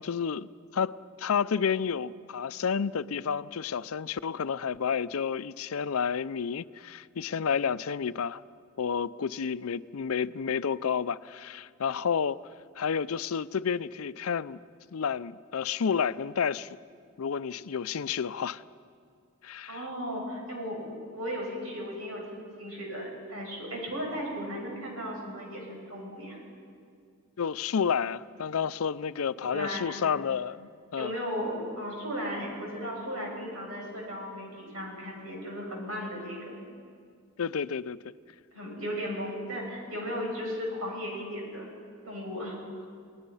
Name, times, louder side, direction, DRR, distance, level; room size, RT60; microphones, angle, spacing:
voice 1, 0.0-8.4 8.8-12.4 12.8-14.6 14.9-16.8 17.2-18.6 19.4-19.8 27.4-31.1 37.4-38.0, left 6 dB, 80° left, 0.5 m, -30 dB
voice 2, 19.7-22.2 22.6-26.4 29.5-30.0 30.9-36.5 38.5-41.7 42.0-42.6, equal, 85° right, 7.0 m, -36 dB
29.5 x 19.0 x 5.6 m
head